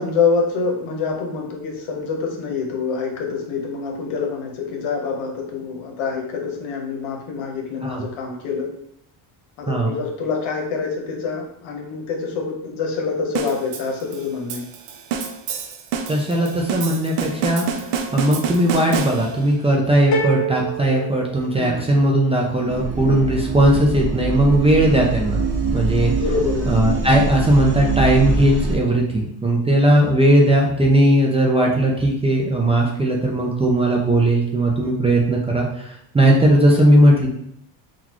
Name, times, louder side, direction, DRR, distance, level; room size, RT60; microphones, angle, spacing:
voice 1, 0.0-8.7 9.6-14.6 21.5-21.8 26.2-26.7, left 5 dB, 85° left, 2 dB, 1.0 m, -26 dB
voice 2, 9.7-10.0 16.1-25.4 25.7-26.1 26.7-37.3, right 1 dB, 15° right, -2 dB, 0.4 m, -18 dB
sound 1, 13.3-19.6, right 7 dB, 75° right, 0.6 m, -28 dB
sound 2, 20.1-22.1, right 3 dB, 35° left, 0.8 m, -26 dB
sound 3, 22.7-28.7, right 4 dB, 35° right, 0.8 m, -24 dB
3.8 x 2.4 x 2.9 m, 0.71 s
cardioid pair, 120°, 48 cm